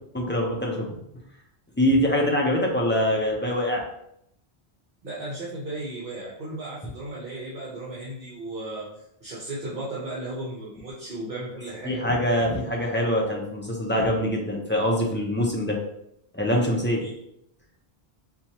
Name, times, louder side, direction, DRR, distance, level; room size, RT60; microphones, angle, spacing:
voice 1, 0.1-1.0 1.8-3.8 11.9-15.8 16.3-17.0, equal, 15° left, -2 dB, 0.4 m, -24 dB
voice 2, 5.0-8.9 9.2-12.0 17.0-17.1, right 1 dB, 60° right, -8 dB, 1.0 m, -35 dB
4.5 x 2.3 x 2.8 m, 0.76 s
omnidirectional pair, 1.1 m